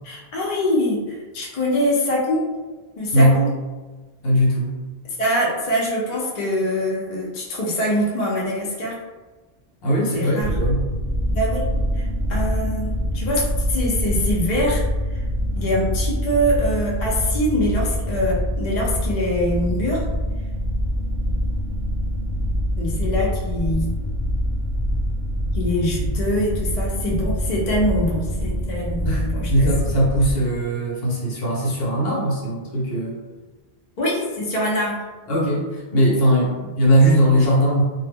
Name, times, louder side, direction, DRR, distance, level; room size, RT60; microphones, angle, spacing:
voice 1, 0.0-2.4 3.0-3.5 5.0-9.0 10.1-10.6 11.3-11.7 11.9-14.8 15.5-20.0 22.8-23.9 25.5-29.7 34.0-35.1, equal, 50° left, -4 dB, 0.6 m, -24 dB
voice 2, 4.2-4.8 9.8-10.9 29.1-33.1 35.3-37.8, equal, 70° left, -4 dB, 0.9 m, -19 dB
sound 1, 10.4-30.3, equal, 65° right, 0.7 m, -25 dB
2.0 x 2.0 x 3.4 m, 1.2 s
omnidirectional pair, 1.0 m